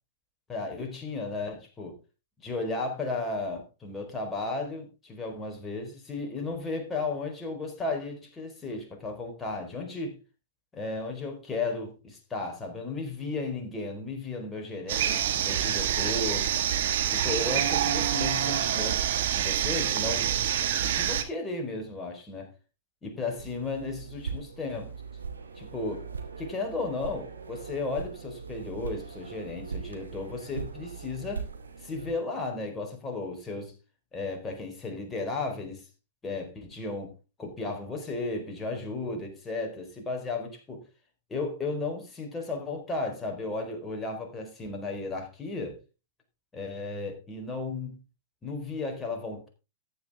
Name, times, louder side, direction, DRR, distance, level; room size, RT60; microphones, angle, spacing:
voice 1, 0.5-2.0 2.4-10.2 10.7-16.5 17.1-20.3 20.8-22.5 23.0-24.9 25.6-26.0 26.4-31.5 31.8-33.8 34.1-35.9 36.2-40.8 41.3-45.8 46.5-48.0 48.4-49.5, left 3 dB, 15° left, 4.4 m, -34 dB
sound 1, 14.9-21.2, right 10 dB, 60° right, 1.8 m, -26 dB
sound 2, 23.4-32.1, right 5 dB, 85° right, 2.4 m, -40 dB
14.0 x 9.6 x 3.6 m
hypercardioid pair, 105°, 0 cm